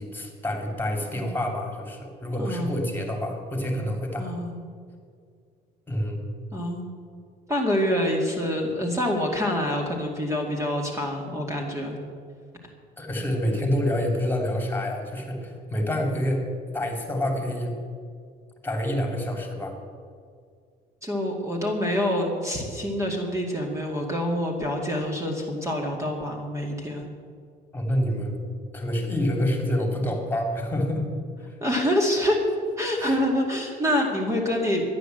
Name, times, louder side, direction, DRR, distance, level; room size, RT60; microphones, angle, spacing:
voice 1, 0.0-4.3 5.9-6.2 13.0-16.4 16.7-17.7 18.6-19.8 27.7-28.4 28.7-31.1 31.4-31.6 33.0-33.2, left 1 dB, 10° left, 2 dB, 2.8 m, -27 dB
voice 2, 2.4-2.8 4.2-4.6 6.5-6.9 7.5-12.0 21.0-27.1 31.6-32.4 32.8-34.8, left 1 dB, 15° right, 0 dB, 2.2 m, -26 dB
13.0 x 10.5 x 7.8 m, 2.1 s
cardioid pair, 110°, 17 cm